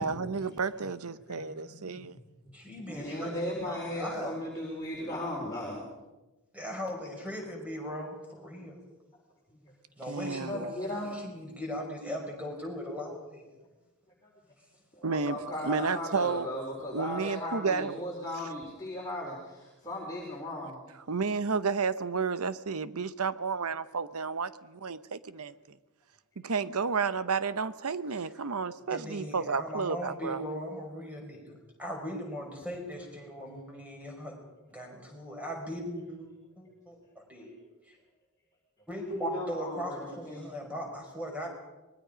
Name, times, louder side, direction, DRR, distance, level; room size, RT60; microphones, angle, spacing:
voice 1, 0.0-2.2 10.1-10.7 15.0-15.4 15.6-16.5 16.9-18.0 21.1-25.8 26.4-30.4, right 5 dB, 75° right, 14 dB, 0.9 m, -31 dB
voice 2, 0.5-0.9 1.3-2.5 2.9-5.8 9.5-9.7 10.5-11.2 13.6-13.7 14.2-14.3 15.0-20.8 39.3-40.5, left 1 dB, 15° left, -4 dB, 4.0 m, -37 dB
voice 3, 2.5-3.4 3.6-4.4 6.5-8.8 10.0-13.5 28.9-34.4 34.7-36.3 36.6-37.0 37.3-37.5 37.8-38.0 38.9-41.5, equal, 5° right, 0 dB, 5.4 m, -38 dB
25.5 x 21.0 x 5.2 m, 1.1 s
head